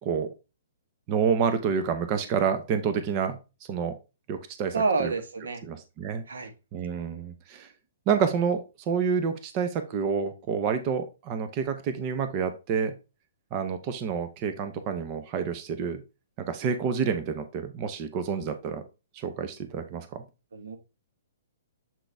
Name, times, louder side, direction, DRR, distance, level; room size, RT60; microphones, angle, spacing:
voice 1, 1.1-3.4 3.7-3.9 4.3-5.1 5.6-6.2 6.7-7.7 8.1-12.9 13.5-16.0 16.5-18.8 19.1-20.2, right 6 dB, 30° right, 8 dB, 0.8 m, -28 dB
voice 2, 4.7-5.6 6.3-6.5 20.5-20.8, right 4 dB, 90° right, 7 dB, 1.4 m, -28 dB
7.5 x 4.0 x 3.4 m, 0.29 s
hypercardioid pair, 155°, 0 cm